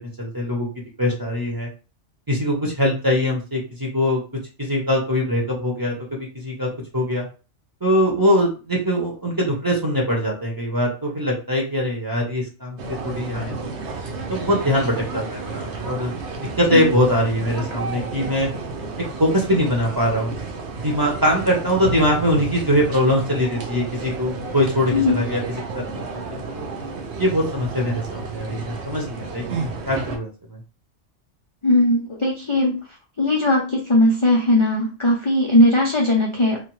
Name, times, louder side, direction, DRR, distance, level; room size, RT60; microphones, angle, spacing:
voice 1, 0.2-0.7 1.0-1.7 2.3-4.2 4.6-7.3 7.8-13.7 14.3-18.5 19.2-20.3 20.8-25.8 26.1-26.6 27.2-30.6, equal, 20° right, -2 dB, 0.7 m, -22 dB
sound 1, 12.8-30.2, right 3 dB, 70° right, 0.9 m, -32 dB
voice 2, 31.6-32.8 33.2-36.6, left 1 dB, 45° left, -1 dB, 0.4 m, -18 dB
2.8 x 2.1 x 3.0 m, 0.34 s
omnidirectional pair, 1.2 m